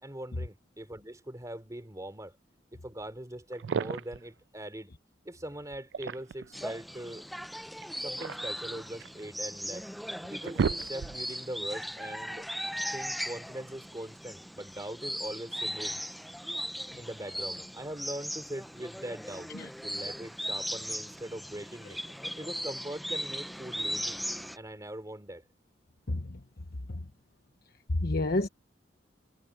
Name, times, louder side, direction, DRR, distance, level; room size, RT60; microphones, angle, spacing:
voice 1, 0.0-2.4 2.7-4.9 5.2-7.2 8.0-9.9 10.3-12.5 12.9-16.0 17.0-19.5 19.8-22.0 22.4-24.2 24.5-25.4, right 1 dB, 20° right, 3.3 m, -41 dB
sound 1, 3.5-4.3 5.7-6.5 7.8-9.2 9.8-9.9 10.2-11.4, right 6 dB, 75° right, 0.4 m, -34 dB
sound 2, 6.5-24.6, equal, ahead, 0.7 m, -38 dB
voice 2, 26.1-26.4 26.9-27.0 28.0-28.5, left 2 dB, 60° left, 1.1 m, -30 dB
head